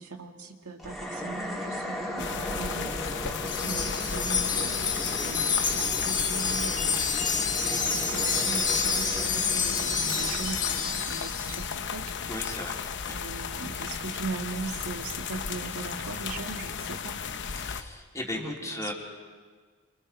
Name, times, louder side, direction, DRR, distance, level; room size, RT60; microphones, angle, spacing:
voice 1, 0.0-7.1 7.7-12.2 13.0-17.2 18.3-18.9, right 3 dB, 85° right, 3 dB, 2.0 m, -39 dB
sound 1, 0.8-12.2, equal, ahead, 3.4 m, -38 dB
sound 2, 2.2-17.8, left 6 dB, 55° left, 0.9 m, -35 dB
Wind chime, 3.5-11.7, left 5 dB, 35° left, 2.2 m, -28 dB
voice 2, 12.3-13.2 17.5-18.9, left 1 dB, 15° left, -2 dB, 3.2 m, -36 dB
29.0 x 26.0 x 4.5 m, 1.5 s
head